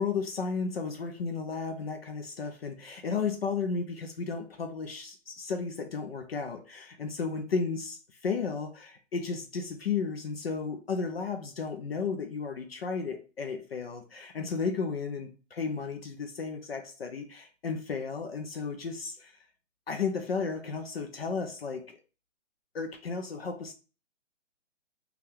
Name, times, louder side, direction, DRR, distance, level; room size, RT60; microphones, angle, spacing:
voice 1, 0.0-19.3 19.9-22.0 22.7-23.7, left 5 dB, 50° left, 0.5 m, -33 dB
2.6 x 2.3 x 3.4 m
hypercardioid pair, 155°, 38 cm